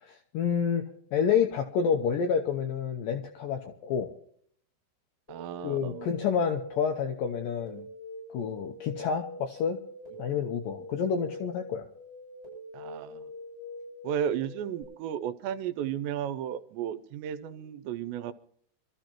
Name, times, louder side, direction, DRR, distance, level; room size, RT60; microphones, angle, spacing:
voice 1, 0.0-0.9 1.1-4.1 5.6-7.9 8.3-9.8 10.2-11.9, left 7 dB, 80° left, 4 dB, 2.0 m, -29 dB
sound 1, 5.3-14.8, left 2 dB, 15° left, 7.9 m, -44 dB
voice 2, 5.3-6.1 12.7-13.2 14.0-18.3, right 9 dB, 85° right, 12 dB, 2.9 m, -34 dB
26.0 x 13.5 x 3.0 m, 0.63 s
omnidirectional pair, 5.0 m